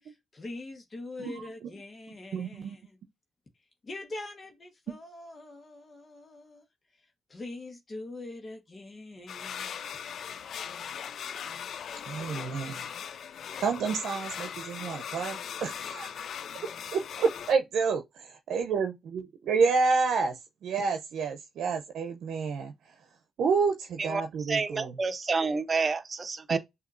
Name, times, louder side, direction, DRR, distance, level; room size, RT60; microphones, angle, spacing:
voice 1, 0.0-3.0 3.8-6.6 7.3-9.8, left 2 dB, 40° left, 1.4 m, -43 dB
voice 2, 2.3-2.7 12.1-12.8 13.6-16.1 16.9-22.7 23.4-24.9 26.5-26.6, right 5 dB, 75° right, 0.7 m, -29 dB
sound 1, 9.3-17.5, left 8 dB, 70° left, 0.4 m, -39 dB
voice 3, 24.5-26.6, right 4 dB, 40° right, 0.7 m, -29 dB
6.4 x 2.8 x 2.6 m
cardioid pair, 70°, 0 cm